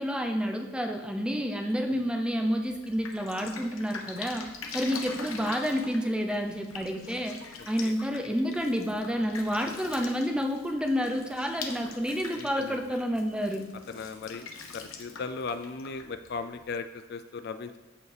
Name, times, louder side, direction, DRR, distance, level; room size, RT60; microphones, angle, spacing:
voice 1, 0.0-4.5 4.7-7.3 7.7-13.7, equal, 5° right, 4 dB, 0.6 m, -29 dB
Drip, 2.6-16.7, left 4 dB, 90° left, 1.0 m, -44 dB
voice 2, 12.4-12.8 13.9-17.8, left 4 dB, 50° left, 10 dB, 0.4 m, -37 dB
14.0 x 4.7 x 3.4 m, 1.1 s
head